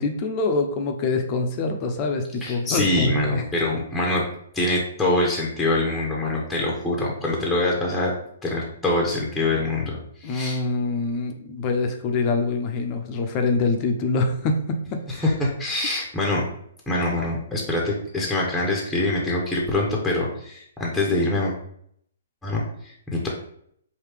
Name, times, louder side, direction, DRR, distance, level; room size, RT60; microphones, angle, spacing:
voice 1, 0.0-3.4 10.2-15.0, left 3 dB, 35° left, 4 dB, 0.6 m, -25 dB
voice 2, 2.4-4.2 4.5-8.1 8.4-10.6 15.1-16.4 16.9-21.5 22.4-23.3, left 2 dB, 5° left, -3 dB, 0.9 m, -24 dB
4.9 x 2.7 x 3.3 m, 0.67 s
hypercardioid pair, 140°, 0 cm